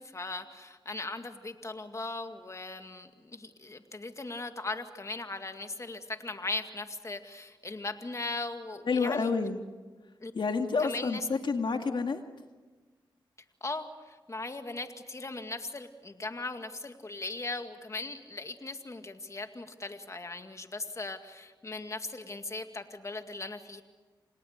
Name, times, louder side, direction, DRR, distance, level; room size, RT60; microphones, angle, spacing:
voice 1, 0.0-9.3 10.2-10.3 10.8-11.3 13.6-23.8, left 2 dB, 35° left, 7 dB, 2.1 m, -38 dB
voice 2, 8.9-9.6 10.3-12.2, left 4 dB, 65° left, 5 dB, 2.1 m, -29 dB
28.0 x 27.5 x 6.7 m, 1.3 s
cardioid pair, 55°, 9 cm